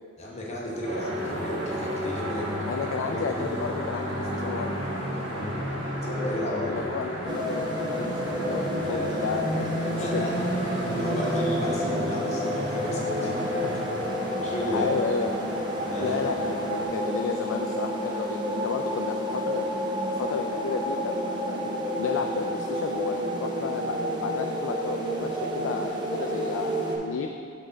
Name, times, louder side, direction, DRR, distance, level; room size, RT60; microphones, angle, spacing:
voice 1, 0.2-2.8 3.1-3.4 5.3-6.8 8.8-9.2 9.6-9.7 10.0-10.3 10.9-13.5 14.3-14.9 15.8-16.2, left 1 dB, 35° left, -4 dB, 1.0 m, -33 dB
sound 1, 0.8-16.9, equal, 65° right, 1.4 m, -33 dB
voice 2, 2.7-4.8 6.7-10.2 13.2-13.5 14.0-14.2 14.7-15.4 16.0-21.5 22.0-26.7 27.0-27.3, left 5 dB, 80° left, 3 dB, 0.3 m, -32 dB
sound 2, 7.3-27.0, equal, 25° right, 0.6 m, -30 dB
7.4 x 3.8 x 3.8 m, 2.3 s
head